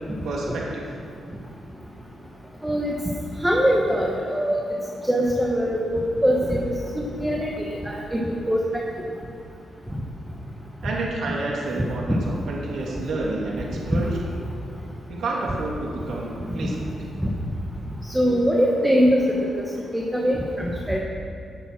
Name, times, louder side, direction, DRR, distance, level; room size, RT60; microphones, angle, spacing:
voice 1, 0.2-0.9 10.8-14.1 15.1-16.9, right 2 dB, 75° right, -3 dB, 2.6 m, -29 dB
voice 2, 2.6-3.0 3.4-4.6 5.1-6.6 7.2-8.6 12.1-12.2 16.6-16.7 18.1-19.3 19.9-21.0, equal, 5° right, -2 dB, 1.2 m, -22 dB
16.0 x 7.0 x 6.0 m, 2.4 s
cardioid pair, 125°, 0 cm